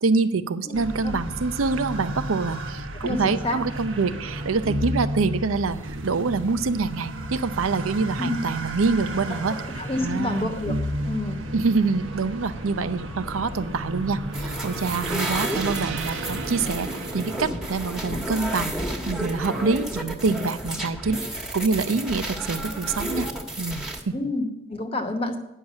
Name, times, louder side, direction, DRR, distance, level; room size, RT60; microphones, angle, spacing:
voice 1, 0.0-9.5 10.0-10.5 11.5-16.9 17.1-18.7 19.1-23.3 23.6-24.1, right 4 dB, 90° right, 12 dB, 0.6 m, -26 dB
voice 2, 0.7-1.2 3.0-3.6 8.2-8.4 9.5-10.8 11.0-11.4 18.1-18.2 24.1-25.4, left 2 dB, 30° left, 6 dB, 1.1 m, -29 dB
sound 1, 0.7-18.7, right 1 dB, 70° right, 1.0 m, -33 dB
sound 2, 14.3-24.0, right 1 dB, ahead, 1.2 m, -31 dB
9.9 x 6.5 x 7.2 m, 0.91 s
head